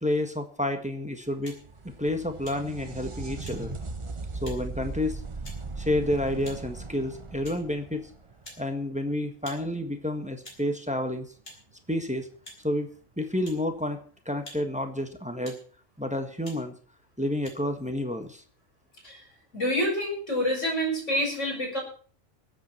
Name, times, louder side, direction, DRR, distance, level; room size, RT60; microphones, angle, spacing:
voice 1, 0.0-1.5 2.0-3.7 4.4-5.2 5.8-8.1 8.6-11.3 11.9-12.3 12.6-12.9 13.2-15.6 16.0-16.7 17.2-18.4, left 1 dB, 5° right, 6 dB, 1.4 m, -30 dB
sound 1, 1.4-1.6 2.4-2.6 3.4-3.6 4.4-4.6 5.4-5.6 6.4-6.6 7.4-7.6 8.4-8.6 9.4-9.6 10.4-10.6 11.4-11.6 12.4-12.6 13.4-13.6 14.4-14.6 15.4-15.6 16.4-16.6 17.4-17.5, equal, 45° left, 4.2 m, -46 dB
sound 2, 1.4-9.0 12.3-12.4 13.5-13.6, right 3 dB, 25° right, 0.8 m, -38 dB
voice 2, 19.5-21.8, equal, 65° left, -1 dB, 5.6 m, -27 dB
23.0 x 8.2 x 4.4 m, 0.42 s
omnidirectional pair, 1.4 m